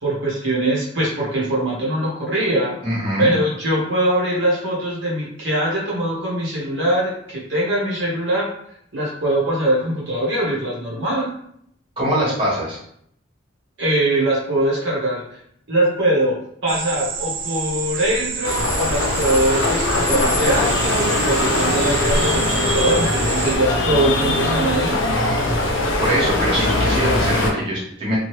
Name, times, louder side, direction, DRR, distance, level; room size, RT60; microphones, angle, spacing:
voice 1, 0.0-2.8 3.2-8.5 8.9-11.3 13.8-15.4 15.7-16.4 16.6-24.9, right 1 dB, 65° right, -5 dB, 1.0 m, -22 dB
voice 2, 2.8-3.3 12.0-12.8 26.0-28.2, equal, 25° right, -7 dB, 1.2 m, -22 dB
sound 1, 16.7-23.6, right 5 dB, 45° right, 0.4 m, -28 dB
sound 2, 18.4-27.5, left 2 dB, 75° left, 0.6 m, -21 dB
2.9 x 2.3 x 3.1 m, 0.69 s
head